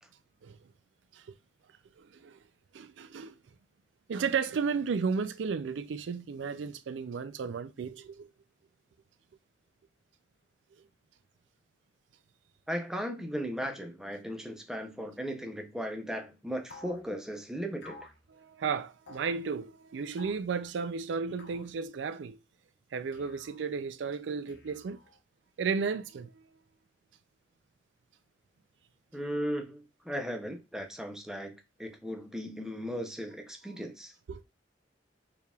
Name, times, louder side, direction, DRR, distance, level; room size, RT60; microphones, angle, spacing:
voice 1, 2.0-2.4 2.7-3.4 4.1-8.3 18.3-22.4 22.9-25.0 25.6-26.5 33.7-33.8 34.3-34.4, right 5 dB, 85° right, 0.4 m, -34 dB
voice 2, 12.7-18.0 29.1-31.5 31.8-34.1, equal, 5° right, 0.6 m, -36 dB
sound 1, 16.7-17.0 17.8-18.2 19.1-19.4 20.2-20.5 21.4-21.7 23.1-23.6 24.5-25.2, left 2 dB, 65° left, 1.0 m, -51 dB
4.6 x 3.4 x 2.3 m
head